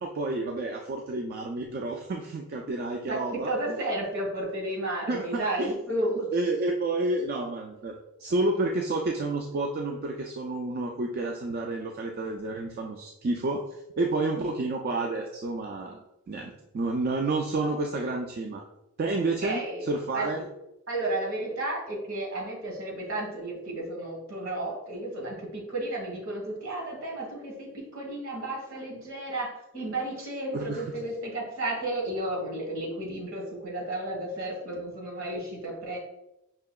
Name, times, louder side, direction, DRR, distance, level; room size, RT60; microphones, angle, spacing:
voice 1, 0.0-3.5 5.1-5.7 6.3-13.6 14.0-16.0 16.3-18.6 19.0-20.5 30.5-30.8, right 2 dB, 45° right, 1 dB, 0.3 m, -30 dB
voice 2, 3.0-6.3 19.4-19.9 20.1-20.3 20.9-36.0, right 1 dB, 70° right, -1 dB, 1.4 m, -33 dB
5.6 x 2.8 x 2.3 m, 0.87 s
head